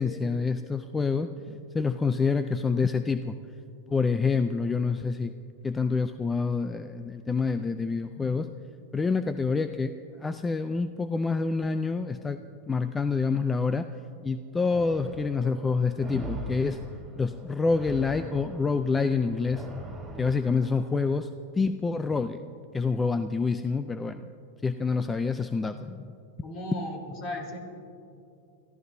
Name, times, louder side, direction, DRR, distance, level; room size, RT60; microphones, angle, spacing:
voice 1, 0.0-3.4 3.9-5.3 5.6-8.5 8.9-9.9 10.2-12.4 12.7-13.9 14.2-16.8 17.2-19.7 20.2-21.3 21.5-22.4 22.7-24.3 24.6-26.1, left 4 dB, 15° left, 10 dB, 0.4 m, -27 dB
sound 1, 14.7-21.1, right 1 dB, 10° right, 2.5 m, -42 dB
voice 2, 26.4-27.6, left 1 dB, 45° left, 2 dB, 3.5 m, -35 dB
28.5 x 14.5 x 2.7 m, 2.7 s
supercardioid pair, 135°, 0 cm